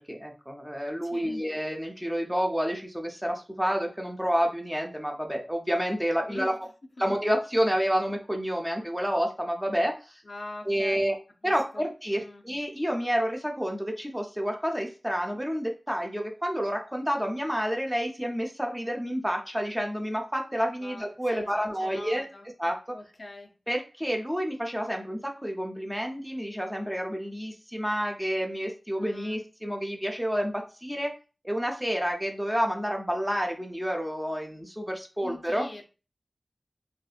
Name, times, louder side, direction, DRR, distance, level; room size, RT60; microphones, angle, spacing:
voice 1, 0.1-6.5 7.0-10.2 10.7-11.2 11.4-22.3 22.6-22.8 23.7-31.1 31.4-35.7, equal, 5° right, 1 dB, 0.6 m, -29 dB
voice 2, 1.0-1.4 6.2-6.6 7.0-7.1 10.2-11.1 11.4-12.4 20.8-22.5 22.9-23.5 29.0-29.4 35.2-35.8, left 2 dB, 55° left, 3 dB, 0.5 m, -43 dB
2.7 x 2.4 x 2.4 m, 0.33 s
wide cardioid pair, 70°, 0 cm